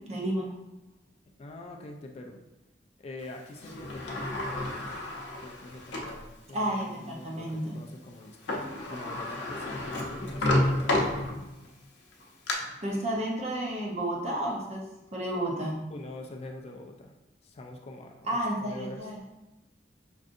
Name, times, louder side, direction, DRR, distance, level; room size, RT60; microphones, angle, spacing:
voice 1, 0.1-0.5 6.5-7.8 12.6-14.8 15.1-15.8 18.3-19.2, right 1 dB, 40° right, -2 dB, 0.8 m, -31 dB
voice 2, 1.4-2.4 3.0-5.1 5.4-6.7 7.0-11.5 15.9-17.1 17.4-19.1, left 2 dB, 35° left, 2 dB, 0.3 m, -44 dB
Sliding door, 3.6-6.2 6.8-6.9 8.2-8.3 8.5-11.7 12.1-12.5, left 1 dB, 85° left, 0.6 m, -30 dB
5.2 x 2.5 x 2.5 m, 0.99 s
head